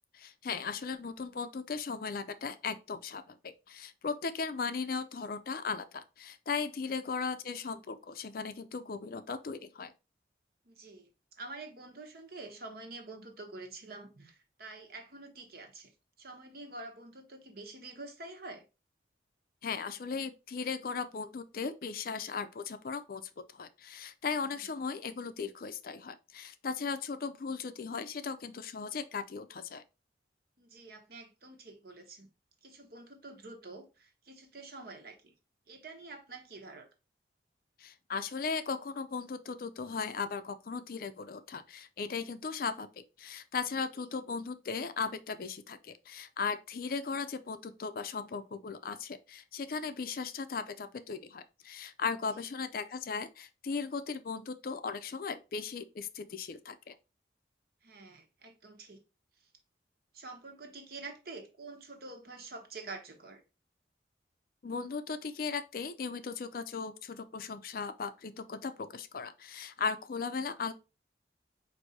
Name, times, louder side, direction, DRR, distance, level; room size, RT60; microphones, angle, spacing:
voice 1, 0.1-9.9 19.6-23.2 23.5-29.8 37.8-42.9 43.2-56.9 64.6-70.7, left 5 dB, 55° left, 0.4 m, -37 dB
voice 2, 10.6-11.1 11.4-15.9 16.2-18.6 24.5-24.6 30.6-32.3 32.6-35.3 35.7-36.9 57.8-59.0 60.1-63.4, right 3 dB, 55° right, 1.0 m, -47 dB
4.7 x 2.6 x 4.0 m
head